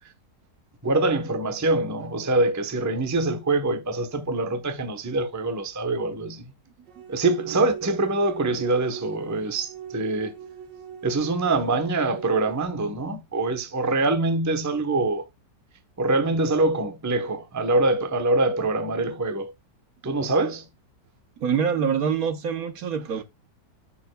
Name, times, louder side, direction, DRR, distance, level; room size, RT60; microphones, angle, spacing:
voice 1, 0.8-6.5 7.1-10.3 11.0-15.2 16.0-19.5 20.0-20.6, right 2 dB, 15° right, 0.6 m, -24 dB
sound 1, 6.9-12.6, right 7 dB, 85° right, 1.9 m, -40 dB
voice 2, 21.4-23.2, right 7 dB, 60° right, 1.2 m, -25 dB
10.5 x 6.7 x 2.2 m
omnidirectional pair, 1.8 m